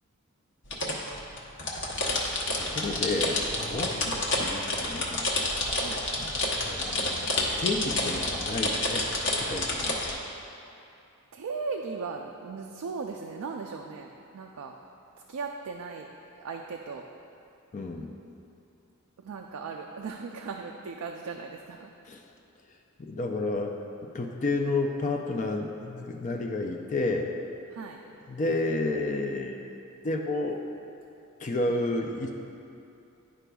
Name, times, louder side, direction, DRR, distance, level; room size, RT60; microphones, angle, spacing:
sound 1, 0.6-10.1, left 2 dB, 60° left, 0.9 m, -29 dB
voice 1, 2.1-5.2 6.1-7.3 7.6-9.1 9.4-10.1 17.7-18.1 22.1-22.2 23.0-23.8 24.1-27.3 28.3-29.6 30.0-30.6 31.4-32.3, left 2 dB, 35° left, 3 dB, 0.4 m, -31 dB
voice 2, 11.3-14.7 15.3-16.1 16.3-17.0 19.2-21.9 27.7-28.0 31.7-31.8, right 4 dB, 85° right, 2 dB, 0.4 m, -37 dB
11.0 x 4.9 x 2.3 m, 2.7 s
head